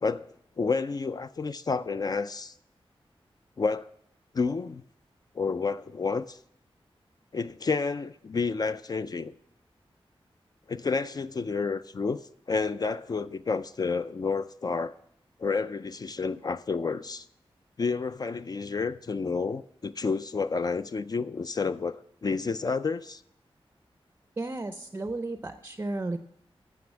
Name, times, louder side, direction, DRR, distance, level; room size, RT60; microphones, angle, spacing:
voice 1, 0.6-2.5 3.6-3.9 4.3-4.8 5.4-6.4 7.3-9.3 10.7-12.2 12.5-14.9 15.4-17.3 17.8-23.2, left 4 dB, 40° left, 0.3 m, -30 dB
voice 2, 24.4-26.2, right 2 dB, 25° right, 0.5 m, -33 dB
9.5 x 6.9 x 7.2 m
wide cardioid pair, 130°, 10 cm